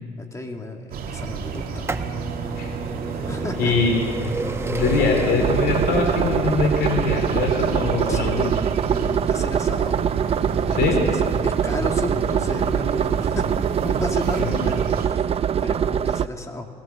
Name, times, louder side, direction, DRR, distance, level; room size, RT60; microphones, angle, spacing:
voice 1, 0.2-1.9 3.2-3.7 8.1-8.5 8.9-10.0 10.5-10.8 11.0-13.5 13.8-16.7, left 2 dB, 20° left, 3 dB, 2.5 m, -33 dB
sound 1, 0.9-15.1, right 5 dB, 60° right, 2.5 m, -32 dB
sound 2, 1.5-13.2 14.0-14.1 15.1-15.2 15.4-15.5, right 3 dB, 15° right, 1.0 m, -33 dB
voice 2, 3.6-4.0 4.7-8.5 10.7-11.0 14.3-14.6, left 4 dB, 70° left, 1 dB, 4.1 m, -22 dB
sound 3, 5.4-16.3, right 8 dB, 35° right, 0.5 m, -23 dB
20.5 x 17.5 x 7.3 m, 2.1 s
cardioid pair, 110°, 17 cm